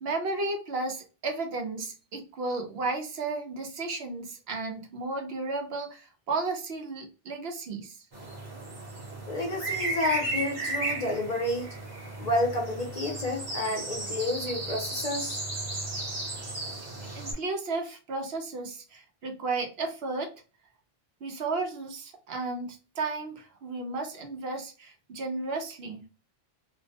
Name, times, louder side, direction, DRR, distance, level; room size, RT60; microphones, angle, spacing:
voice 1, 0.0-8.0 17.1-20.3 21.2-26.0, right 3 dB, 75° right, 3 dB, 0.9 m, -33 dB
sound 1, 8.1-17.3, right 2 dB, 45° right, 0.9 m, -35 dB
voice 2, 9.3-11.7 12.2-15.4, left 1 dB, 45° left, 0 dB, 0.6 m, -30 dB
2.5 x 2.0 x 2.7 m, 0.34 s
omnidirectional pair, 1.1 m